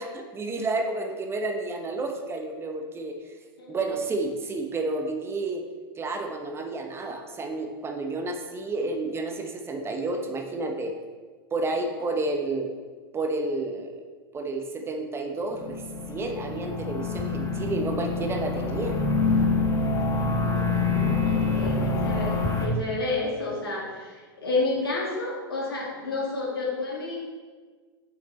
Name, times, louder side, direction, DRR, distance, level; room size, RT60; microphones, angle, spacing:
voice 1, 0.0-3.4 3.7-5.7 6.0-11.0 11.5-12.7 13.1-14.1 14.3-15.8 16.1-19.0, right 2 dB, 20° right, 4 dB, 0.9 m, -30 dB
sound 1, 15.5-22.7, left 3 dB, 25° left, 1.3 m, -26 dB
voice 2, 20.3-27.2, left 3 dB, 85° left, -4 dB, 2.5 m, -30 dB
7.4 x 6.0 x 4.2 m, 1.5 s
hypercardioid pair, 100°, 12 cm